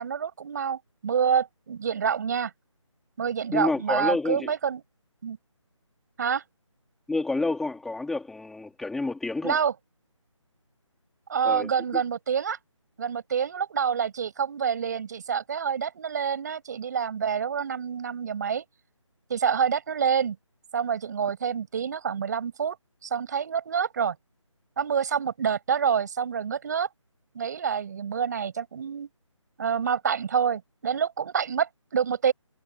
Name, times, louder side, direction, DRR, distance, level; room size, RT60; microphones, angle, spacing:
voice 1, 0.0-2.5 3.2-4.8 5.2-5.4 6.2-6.4 9.4-9.7 11.3-12.6 13.0-18.6 19.3-20.4 20.7-22.8 23.0-24.2 24.8-26.9 27.3-29.1 29.6-32.3, right 7 dB, 35° right, 5.4 m, -27 dB
voice 2, 3.5-4.5 7.1-9.6 11.4-11.7, left 3 dB, ahead, 2.6 m, -29 dB
figure-of-eight pair, 160°, 16 cm